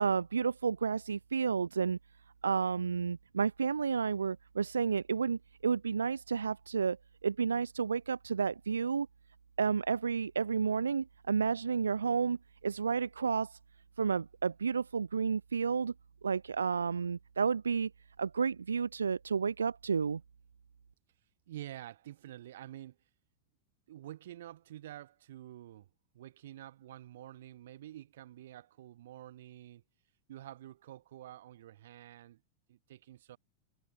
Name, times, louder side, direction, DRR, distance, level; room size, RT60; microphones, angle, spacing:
voice 1, 0.0-2.0 2.4-7.0 7.2-9.1 9.6-12.4 12.6-13.6 14.0-15.9 16.2-17.9 18.2-20.2, right 6 dB, 75° right, 3.1 m, -31 dB
voice 2, 21.5-23.0 23.9-25.9 26.1-29.8 30.3-32.4 32.7-33.4, right 13 dB, 60° right, 7.9 m, -48 dB
figure-of-eight pair, 90°, 0 cm